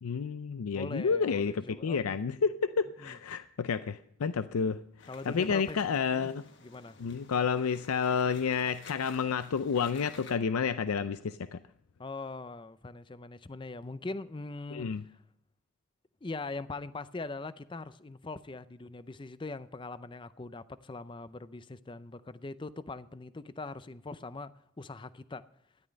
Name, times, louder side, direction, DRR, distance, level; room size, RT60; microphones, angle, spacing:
voice 1, 0.0-6.4 7.0-11.6 14.7-15.0, left 6 dB, 90° left, 0.5 m, -30 dB
voice 2, 0.7-2.2 3.0-3.2 5.1-5.8 6.1-6.3 6.6-7.0 12.0-15.1 16.2-25.5, left 3 dB, 25° left, 0.5 m, -41 dB
sound 1, 5.0-10.4, left 5 dB, 55° left, 1.4 m, -53 dB
13.5 x 11.0 x 5.2 m
head